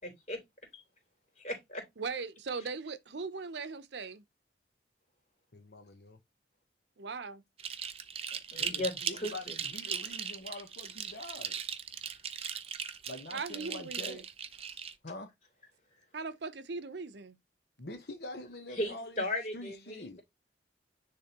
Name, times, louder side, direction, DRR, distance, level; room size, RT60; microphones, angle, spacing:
voice 1, 0.0-0.4 0.7-0.8 1.4-1.8 8.5-9.6 18.8-20.2, left 1 dB, 40° left, 3.3 m, -36 dB
voice 2, 2.0-4.2 7.0-7.4 13.3-14.2 16.1-17.4, right 4 dB, 70° right, 0.7 m, -39 dB
voice 3, 5.5-6.2 8.6-11.6 13.1-14.2 15.0-15.3 17.8-19.3 19.5-20.2, left 1 dB, 60° left, 1.0 m, -45 dB
sound 1, 7.6-14.9, right 7 dB, 30° right, 0.6 m, -38 dB
10.0 x 3.4 x 2.9 m
head